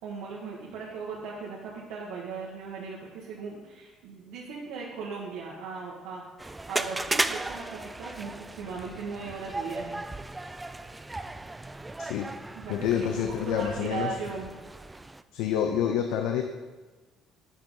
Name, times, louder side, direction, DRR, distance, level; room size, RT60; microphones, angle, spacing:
voice 1, 0.0-6.2 6.7-10.0 12.5-14.5, right 4 dB, 90° right, -4 dB, 1.5 m, -38 dB
sound 1, 6.4-15.2, right 2 dB, 10° right, 0.3 m, -36 dB
voice 2, 12.0-12.4 12.7-14.2 15.3-16.4, left 9 dB, 85° left, 5 dB, 0.6 m, -28 dB
9.5 x 6.8 x 3.9 m, 1.3 s
cardioid pair, 115°, 0 cm